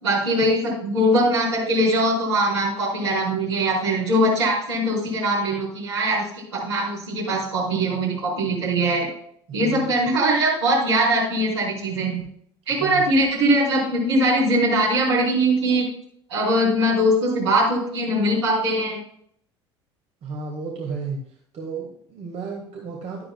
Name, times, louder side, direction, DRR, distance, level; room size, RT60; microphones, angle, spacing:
voice 1, 0.0-6.3 6.5-9.1 9.5-12.2 12.7-15.9 16.3-19.0, right 1 dB, 75° right, -5 dB, 4.3 m, -21 dB
voice 2, 9.5-9.8 12.8-13.0 20.2-21.2 21.5-23.2, right 4 dB, 45° right, 0 dB, 1.8 m, -32 dB
12.0 x 10.5 x 2.3 m, 0.65 s
figure-of-eight pair, 65°, 15 cm